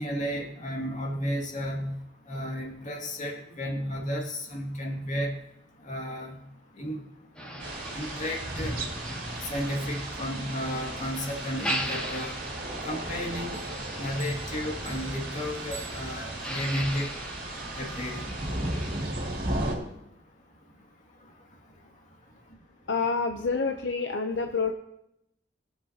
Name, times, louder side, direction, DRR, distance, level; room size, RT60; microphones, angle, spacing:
voice 1, 0.0-1.9 2.3-5.3 5.8-6.4 6.8-7.0 7.9-8.8 9.5-12.4 12.9-13.6 14.0-17.1 17.8-18.3, equal, 40° left, -1 dB, 2.3 m, -33 dB
Motor vehicle (road), 7.3-19.0, equal, 5° left, 2.1 m, -39 dB
sound 1, 7.6-19.7, right 1 dB, 50° right, 2.5 m, -35 dB
sound 2, 13.5-16.6, right 5 dB, 15° right, 1.6 m, -49 dB
voice 2, 22.9-24.7, left 4 dB, 70° left, 5 dB, 0.7 m, -28 dB
22.5 x 7.8 x 2.9 m, 0.84 s
head